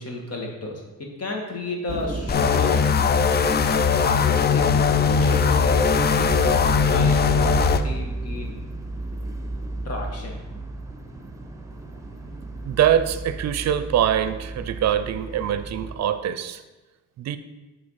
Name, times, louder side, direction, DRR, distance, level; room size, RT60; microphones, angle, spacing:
voice 1, 0.0-2.8 4.0-8.6 9.9-10.4, left 2 dB, 55° left, 1 dB, 1.9 m, -32 dB
sound 1, 1.9-16.0, right 3 dB, 10° right, 1.0 m, -32 dB
sound 2, 2.3-7.8, left 6 dB, 35° left, 0.4 m, -20 dB
voice 2, 12.7-16.6 17.2-17.4, right 10 dB, 60° right, 12 dB, 0.5 m, -23 dB
7.8 x 4.0 x 5.7 m, 1.1 s
cardioid pair, 90°, 30 cm